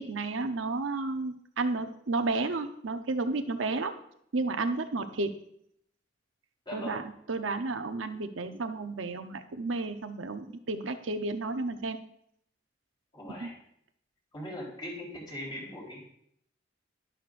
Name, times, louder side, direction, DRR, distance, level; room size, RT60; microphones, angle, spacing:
voice 1, 0.0-3.9 4.3-5.4 6.7-12.0 13.4-13.5, right 3 dB, 90° right, 7 dB, 0.8 m, -32 dB
voice 2, 6.7-7.0 13.1-13.6 14.3-16.1, left 1 dB, 25° left, -4 dB, 3.9 m, -40 dB
11.5 x 11.0 x 2.6 m, 0.70 s
head